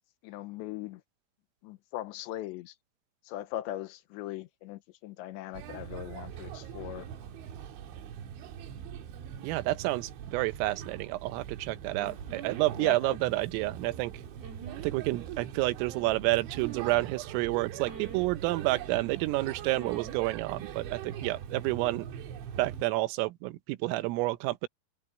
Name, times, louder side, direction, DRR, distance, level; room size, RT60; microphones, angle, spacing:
voice 1, 0.2-1.0 1.6-2.7 3.3-7.1 12.8-13.2, left 14 dB, 75° left, 2.9 m, -40 dB
Male speech man speaking / Child speech kid speaking / Chatter, 5.5-22.8, right 9 dB, 70° right, 4.1 m, -42 dB
voice 2, 9.4-14.1 14.8-22.1 22.6-24.7, right 19 dB, 85° right, 3.6 m, -29 dB
sound 1, 12.0-12.7 14.4-14.9 16.5-17.1 17.8-18.3 19.7-20.2 20.5-20.8, right 7 dB, 50° right, 7.1 m, -45 dB
omnidirectional pair, 5.8 m